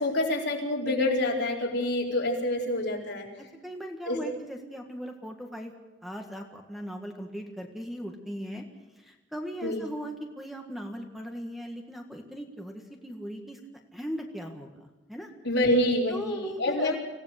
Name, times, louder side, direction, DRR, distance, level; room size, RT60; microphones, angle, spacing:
voice 1, 0.0-3.3 4.1-4.2 9.6-9.8 15.4-17.0, left 1 dB, 65° left, -2 dB, 4.6 m, -27 dB
voice 2, 3.4-5.7 6.0-8.6 9.0-13.6 13.9-14.7 15.1-15.3 16.1-17.0, equal, ahead, 3 dB, 1.7 m, -38 dB
26.0 x 16.5 x 6.6 m, 1.1 s
head